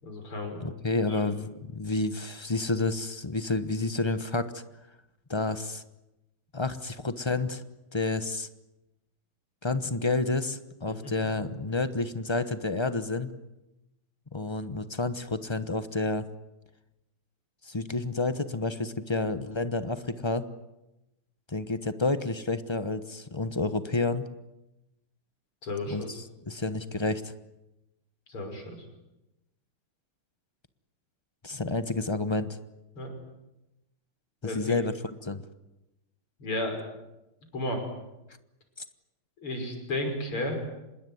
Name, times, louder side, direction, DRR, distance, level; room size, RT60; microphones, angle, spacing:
voice 1, 0.0-0.7 1.1-1.3 10.9-11.1 25.6-26.1 28.3-28.8 32.9-33.1 34.4-34.7 36.4-36.9 37.5-37.8 39.4-40.6, left 1 dB, 90° left, 4 dB, 6.7 m, -33 dB
voice 2, 0.6-4.6 5.3-5.8 6.5-7.6 7.9-8.5 9.6-13.3 14.3-16.3 17.6-20.5 21.5-24.3 25.9-27.3 31.4-32.6 34.4-34.9 35.2-35.4, left 3 dB, 25° left, 11 dB, 0.6 m, -30 dB
26.5 x 21.0 x 9.6 m, 0.95 s
omnidirectional pair, 2.3 m